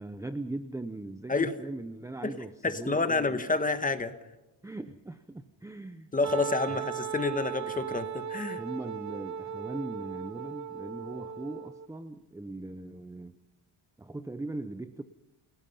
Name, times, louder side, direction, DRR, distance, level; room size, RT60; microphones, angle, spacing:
voice 1, 0.0-3.4 4.6-6.1 6.7-6.8 8.6-13.4 14.0-15.0, right 2 dB, 5° right, 10 dB, 0.6 m, -40 dB
voice 2, 2.6-4.1 6.1-8.6, left 3 dB, 15° left, 10 dB, 1.3 m, -29 dB
Wind instrument woodwind instrument, 6.2-11.9, right 8 dB, 35° right, 1.0 m, -37 dB
28.5 x 18.5 x 5.6 m, 1.1 s
wide cardioid pair, 170°, 47 cm